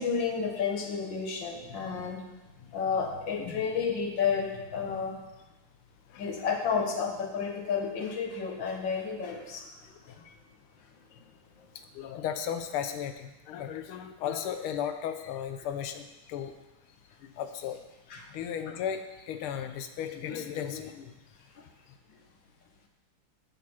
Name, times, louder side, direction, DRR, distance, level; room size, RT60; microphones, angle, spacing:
voice 1, 0.0-2.2 2.6-5.2 6.2-10.2 11.6-11.7 18.1-18.3 20.3-20.4 21.6-21.7, left 6 dB, 60° left, 2 dB, 1.7 m, -31 dB
voice 2, 11.9-16.5 17.2-17.8 18.3-21.1, left 9 dB, 85° left, 8 dB, 1.6 m, -35 dB
11.0 x 6.6 x 4.3 m, 1.0 s
omnidirectional pair, 2.4 m